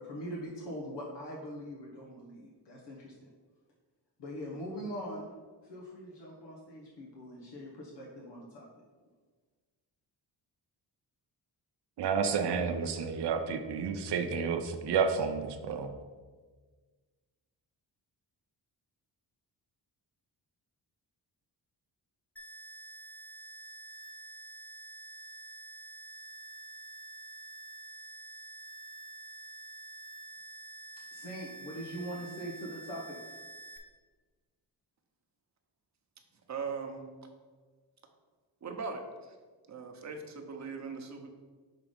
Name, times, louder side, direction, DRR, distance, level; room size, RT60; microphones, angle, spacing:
voice 1, 0.0-3.3 4.2-5.3 5.6-8.7 31.1-33.4, equal, 85° left, -3 dB, 1.1 m, -42 dB
voice 2, 12.0-16.0, right 6 dB, 75° right, 7 dB, 0.7 m, -30 dB
sound 1, 22.4-33.8, right 3 dB, 5° left, 0.8 m, -48 dB
voice 3, 36.5-37.1 38.6-39.0 39.7-41.3, right 5 dB, 40° right, 4 dB, 0.9 m, -39 dB
5.9 x 3.7 x 5.1 m, 1.4 s
cardioid pair, 115°, 41 cm